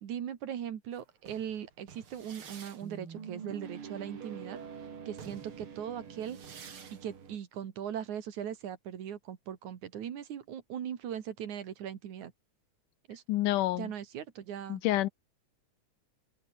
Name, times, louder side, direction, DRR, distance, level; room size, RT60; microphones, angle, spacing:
voice 1, 0.0-4.6 5.1-6.4 6.9-12.3 13.1-13.2 13.7-14.8, right 9 dB, 65° right, 3.2 m, -39 dB
sound 1, 0.9-7.4, right 6 dB, 45° right, 2.9 m, -46 dB
voice 2, 13.3-13.9 14.7-15.1, left 16 dB, 85° left, 2.4 m, -28 dB
open air
omnidirectional pair, 3.7 m